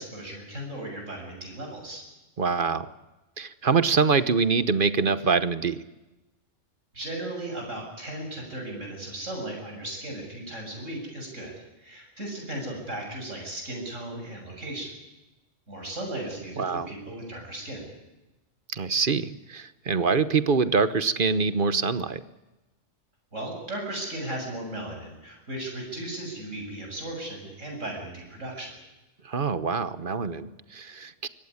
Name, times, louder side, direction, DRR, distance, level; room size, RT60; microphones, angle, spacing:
voice 1, 0.0-2.0 6.9-14.9 15.7-17.9 23.3-28.7, right 1 dB, 75° right, 1 dB, 7.7 m, -36 dB
voice 2, 2.4-2.9 3.4-5.8 16.6-16.9 18.7-22.2 29.2-31.3, right 5 dB, 45° right, 14 dB, 1.1 m, -25 dB
24.0 x 17.5 x 9.7 m, 1.1 s
omnidirectional pair, 1.3 m